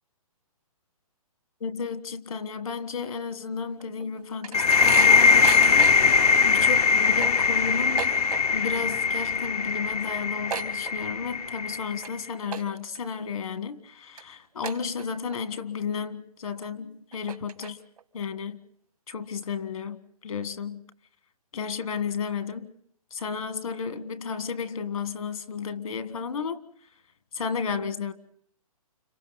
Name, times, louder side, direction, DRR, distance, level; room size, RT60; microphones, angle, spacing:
voice 1, 1.6-8.2 8.5-17.8 18.1-18.6 19.1-20.8 21.5-22.7 23.1-26.6 27.3-28.1, left 6 dB, 70° left, 1.6 m, -33 dB
sound 1, 3.8-6.2 6.6-6.7 7.0-8.7 9.0-9.4 9.7-9.8 10.0-11.4 11.8-12.1 12.5-13.0 13.5-13.6 14.2-14.3 14.6-15.4 15.8-15.9 16.6-16.7 17.1-18.0, right 7 dB, 80° right, 2.0 m, -35 dB
sound 2, 4.5-12.1, left 5 dB, 85° left, 1.1 m, -21 dB
30.0 x 27.0 x 4.0 m
hypercardioid pair, 170°, 19 cm